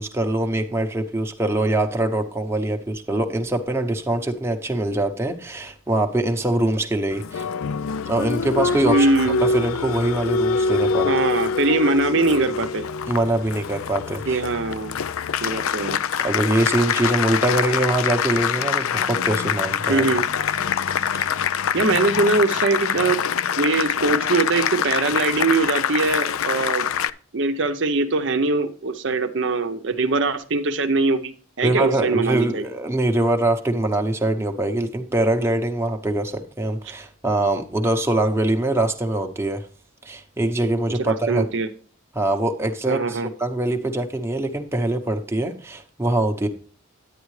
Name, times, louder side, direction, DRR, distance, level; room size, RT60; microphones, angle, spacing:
voice 1, 0.0-7.5 8.0-9.1 9.5-11.1 13.0-14.4 15.4-15.7 16.2-20.0 31.6-39.6 40.0-41.4 42.1-46.5, right 1 dB, 10° right, 4 dB, 0.8 m, -23 dB
Applause, 7.1-27.1, left 6 dB, 80° left, 0.4 m, -24 dB
voice 2, 8.8-9.4 11.0-12.8 14.3-14.9 15.4-16.0 19.9-20.3 21.7-23.2 23.6-26.9 27.3-32.7 41.0-41.7 42.9-43.3, right 3 dB, 60° right, 8 dB, 0.7 m, -22 dB
9.9 x 9.4 x 3.2 m, 0.41 s
head